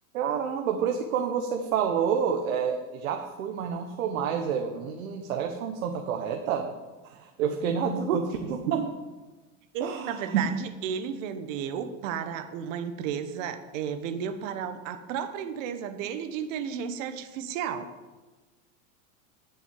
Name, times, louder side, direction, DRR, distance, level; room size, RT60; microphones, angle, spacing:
voice 1, 0.1-6.8 7.0-8.9 9.8-10.5, right 7 dB, 90° right, 4 dB, 1.3 m, -28 dB
voice 2, 9.7-17.9, right 8 dB, 70° right, 9 dB, 1.3 m, -33 dB
10.0 x 6.2 x 8.9 m, 1.2 s
supercardioid pair, 135°, 40 cm